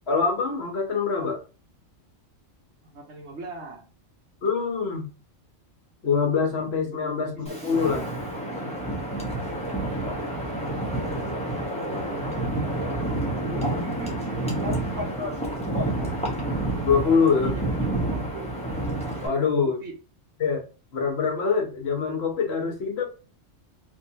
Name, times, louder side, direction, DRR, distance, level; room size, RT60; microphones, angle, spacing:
voice 1, 0.1-1.4 4.4-5.1 6.0-7.3 7.6-8.0 16.8-17.6 19.2-19.8 20.4-20.7 20.9-23.0, left 5 dB, 60° left, 1.0 m, -24 dB
voice 2, 2.8-3.9 6.4-7.9 9.9-10.1 11.8-13.7 14.0-16.1 17.3-18.5 19.1-19.9, right 2 dB, 65° right, 1.0 m, -42 dB
Wind, 7.5-19.3, right 1 dB, 5° left, 0.8 m, -29 dB
3.2 x 2.7 x 2.7 m
omnidirectional pair, 1.3 m